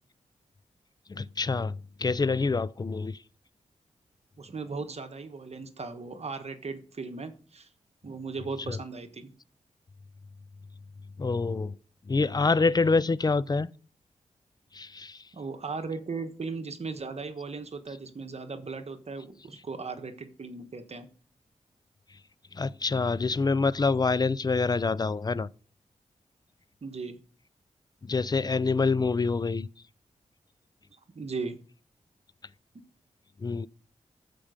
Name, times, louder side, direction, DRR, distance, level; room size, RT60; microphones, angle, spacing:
voice 1, 1.1-3.2 8.7-8.8 11.2-11.8 12.1-13.7 14.7-15.2 22.5-25.5 28.0-29.7 33.4-33.7, left 4 dB, 30° left, 0.5 m, -26 dB
voice 2, 4.4-7.7 8.0-9.3 15.3-21.1 26.8-27.2 31.1-31.6, right 4 dB, 55° right, 1.3 m, -37 dB
13.5 x 5.1 x 5.1 m
cardioid pair, 60°, 13 cm